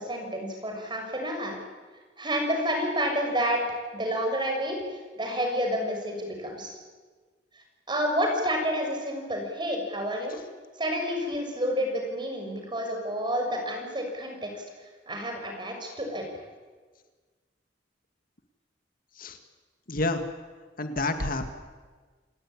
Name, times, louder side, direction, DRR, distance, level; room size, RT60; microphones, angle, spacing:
voice 1, 0.0-1.6 2.2-3.6 3.9-4.8 5.2-6.8 7.9-10.4 10.8-14.6 15.1-16.2, equal, 25° right, 3 dB, 6.2 m, -29 dB
voice 2, 19.9-20.2 20.8-21.5, left 2 dB, 50° left, 7 dB, 2.0 m, -28 dB
28.5 x 17.0 x 9.9 m, 1.4 s
head